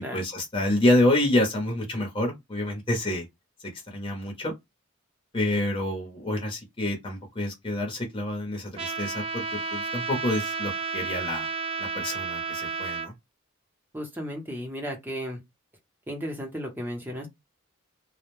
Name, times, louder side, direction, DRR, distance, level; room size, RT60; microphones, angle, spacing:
voice 1, 0.1-3.2 3.9-4.5 5.3-11.5 11.8-13.1, left 1 dB, 25° left, 0.8 m, -27 dB
Trumpet, 8.8-13.1, right 5 dB, 25° right, 0.4 m, -32 dB
voice 2, 13.9-15.4 16.1-17.3, equal, 10° right, 0.8 m, -34 dB
2.2 x 2.1 x 3.1 m
head